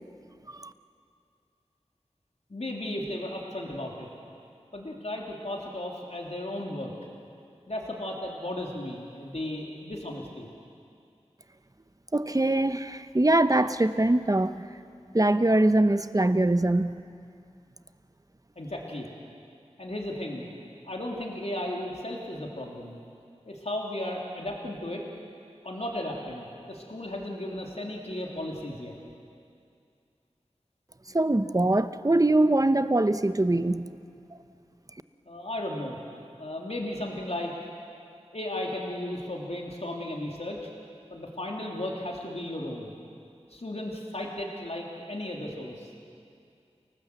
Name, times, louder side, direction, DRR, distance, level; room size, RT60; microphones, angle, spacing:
voice 1, 2.5-4.1 4.7-6.9 7.7-10.5 18.5-19.1 19.8-20.4 20.8-23.0 23.4-25.0 25.6-28.9 35.2-36.0 36.4-37.5 38.3-40.7 41.1-42.9 43.5-45.9, left 1 dB, 65° left, -1 dB, 3.3 m, -35 dB
voice 2, 12.1-14.6 15.1-16.9 31.1-33.9, right 2 dB, 30° right, 11 dB, 0.9 m, -23 dB
29.0 x 18.5 x 8.2 m, 2.4 s
wide cardioid pair, 45°, 12 cm